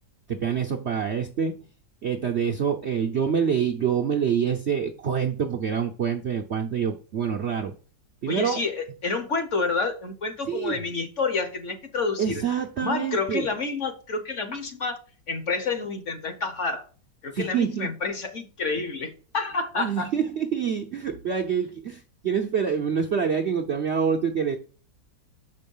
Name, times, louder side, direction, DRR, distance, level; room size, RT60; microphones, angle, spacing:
voice 1, 0.3-1.6 2.0-7.7 8.2-8.6 10.5-10.8 12.2-13.5 17.3-17.9 19.8-24.6, right 7 dB, 60° right, 0.7 m, -26 dB
voice 2, 8.3-12.4 12.8-15.0 15.3-16.9 17.2-20.1, left 4 dB, 50° left, 1.2 m, -29 dB
6.7 x 5.4 x 5.4 m
omnidirectional pair, 1.9 m